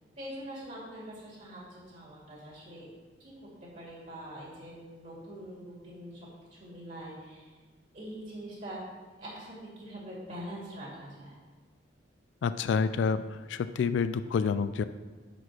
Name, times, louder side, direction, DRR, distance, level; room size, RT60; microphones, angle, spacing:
voice 1, 0.2-2.9 3.2-3.3 3.7-7.6 7.9-8.8 9.2-11.4, right 1 dB, 40° right, -5 dB, 2.3 m, -44 dB
voice 2, 12.4-13.2 13.5-14.8, left 5 dB, 75° left, 12 dB, 0.3 m, -28 dB
6.1 x 5.1 x 5.8 m, 1.4 s
head